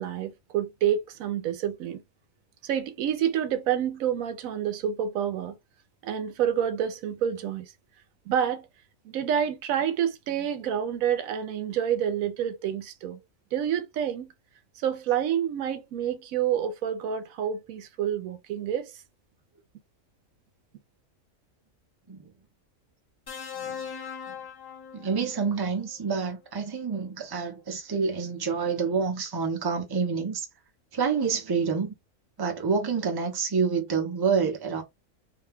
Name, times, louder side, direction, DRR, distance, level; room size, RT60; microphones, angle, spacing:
voice 1, 0.0-2.0 2.6-5.5 6.0-7.7 8.3-8.7 9.0-13.2 13.5-14.3 14.8-18.9, right 9 dB, 85° right, 1.0 m, -28 dB
sound 1, 23.3-25.5 26.8-27.1, left 7 dB, 30° left, 0.4 m, -39 dB
voice 2, 24.9-30.5 30.9-31.9 32.4-34.8, right 5 dB, 25° right, 0.6 m, -28 dB
2.7 x 2.2 x 3.4 m
omnidirectional pair, 1.4 m